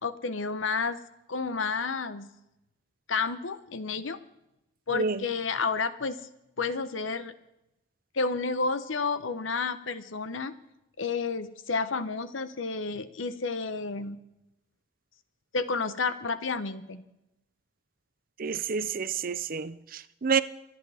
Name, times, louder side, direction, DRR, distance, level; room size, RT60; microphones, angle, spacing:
voice 1, 0.0-1.0 1.3-2.3 3.1-4.2 4.9-6.2 6.6-7.3 8.1-10.5 11.0-14.2 15.5-17.0, left 4 dB, 90° left, 0.9 m, -30 dB
voice 2, 4.9-5.2 18.4-20.4, right 5 dB, 50° right, 0.6 m, -29 dB
24.0 x 10.5 x 3.5 m
head